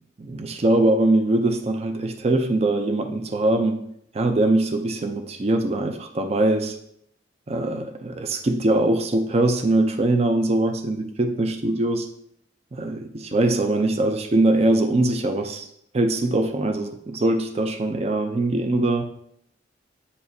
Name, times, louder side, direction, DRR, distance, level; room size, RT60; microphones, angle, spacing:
voice 1, 0.2-3.8 4.1-6.8 7.5-12.1 12.7-15.7 15.9-19.0, right 2 dB, 35° right, 6 dB, 0.4 m, -22 dB
8.3 x 4.9 x 2.7 m, 0.72 s
head